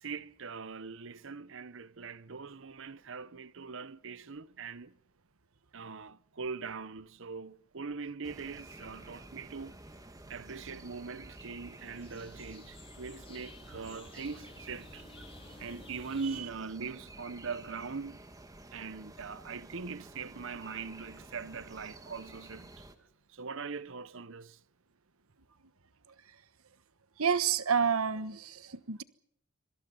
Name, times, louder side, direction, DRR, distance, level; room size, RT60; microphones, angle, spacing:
voice 1, 0.0-5.0 5.7-9.8 10.3-15.1 15.6-18.2 18.7-22.8 23.3-24.6, right 5 dB, 60° right, 0.8 m, -41 dB
sound 1, 8.2-23.0, right 2 dB, 15° right, 2.1 m, -51 dB
sound 2, 11.4-16.4, left 3 dB, 25° left, 3.3 m, -53 dB
voice 2, 27.2-29.0, right 6 dB, 80° right, 1.2 m, -29 dB
26.0 x 25.0 x 5.5 m
head